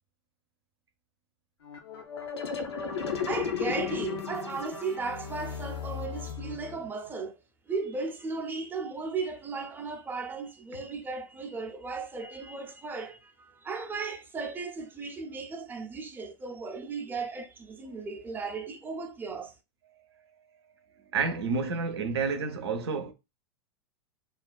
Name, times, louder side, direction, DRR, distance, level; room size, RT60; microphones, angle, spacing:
sound 1, 1.6-7.0, left 7 dB, 85° left, 0.6 m, -35 dB
voice 1, 3.3-7.4 7.7-19.5, right 4 dB, 15° right, 0.5 m, -36 dB
voice 2, 21.1-23.1, right 4 dB, 80° right, 0.6 m, -29 dB
2.4 x 2.2 x 2.4 m
hypercardioid pair, 100°, 13 cm